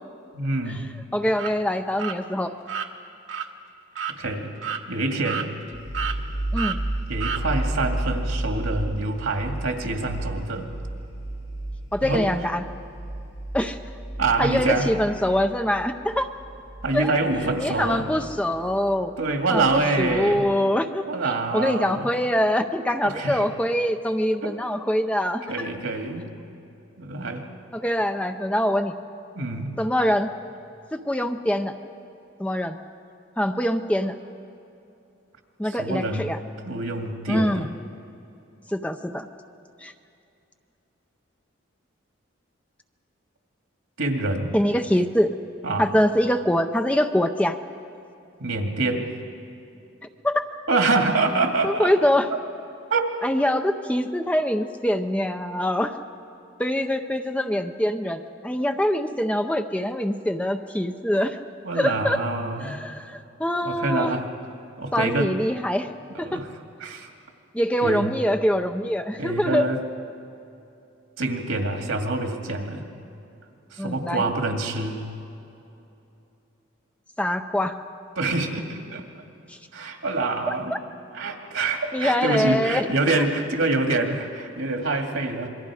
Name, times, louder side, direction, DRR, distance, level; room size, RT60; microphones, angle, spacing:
voice 1, 0.3-0.9 4.1-4.5 4.9-5.5 7.1-10.7 12.0-12.3 14.2-14.9 16.8-18.0 19.2-20.4 21.1-22.1 23.0-23.4 24.4-24.5 25.5-26.3 27.0-27.4 29.4-29.7 35.7-36.3 36.6-37.7 44.0-44.5 45.6-45.9 48.4-49.1 50.7-51.9 52.9-53.1 61.6-62.8 63.6-64.3 64.8-65.3 66.1-66.5 66.8-67.1 67.8-68.1 69.2-69.8 71.2-72.9 73.7-75.0 78.2-79.0 79.7-80.8 81.1-85.5, right 2 dB, 90° right, 3 dB, 2.3 m, -26 dB
voice 2, 1.1-2.5 6.5-6.8 11.9-12.6 13.5-13.8 14.4-16.3 16.9-17.1 17.6-19.1 19.5-25.8 27.7-29.0 29.8-30.3 30.9-31.8 32.4-32.8 33.4-34.1 35.6-36.4 37.3-37.7 38.7-39.3 39.8-39.9 44.5-45.3 45.8-47.6 50.2-50.4 51.6-52.3 53.2-56.0 56.6-61.4 61.8-62.2 62.6-64.1 64.9-65.9 66.2-66.4 67.5-69.6 73.8-74.2 77.2-77.7 79.5-79.6 80.5-80.6 81.9-82.9, equal, 5° left, 7 dB, 0.6 m, -24 dB
sound 1, 1.3-1.5 2.0-2.2 2.7-2.9 3.3-3.5 4.0-4.2 4.6-4.8 5.2-5.7 5.9-6.2 6.6-6.8 7.2-7.4, right 7 dB, 75° right, 1.2 m, -30 dB
sound 2, 5.7-20.4, right 1 dB, 70° left, 6.5 m, -33 dB
27.0 x 22.0 x 4.9 m, 2.8 s
head